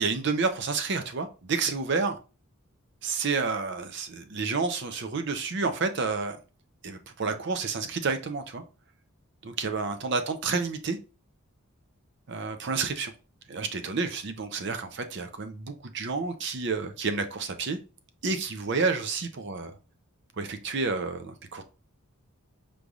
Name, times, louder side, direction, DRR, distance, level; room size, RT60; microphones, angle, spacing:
voice 1, 0.0-2.2 3.0-6.4 6.8-8.6 9.4-11.0 12.3-13.1 13.5-17.8 18.2-19.7 20.4-21.6, right 4 dB, 55° right, 0.5 m, -30 dB
5.2 x 3.2 x 2.4 m
head